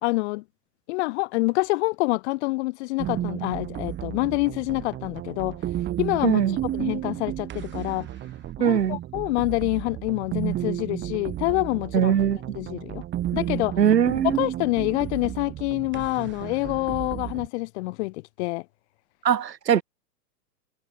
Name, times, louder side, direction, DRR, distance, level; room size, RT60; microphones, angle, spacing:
voice 1, 0.0-0.4 0.9-5.6 6.0-8.1 8.6-12.1 12.5-13.0 13.3-13.8 14.3-18.7, left 23 dB, 45° left, 1.9 m, -27 dB
sound 1, 3.0-17.5, right 12 dB, 20° right, 2.5 m, -33 dB
voice 2, 6.2-6.6 8.6-9.0 11.9-12.4 13.8-14.5 19.2-19.8, right 9 dB, 85° right, 2.0 m, -21 dB
hypercardioid pair, 130°, 48 cm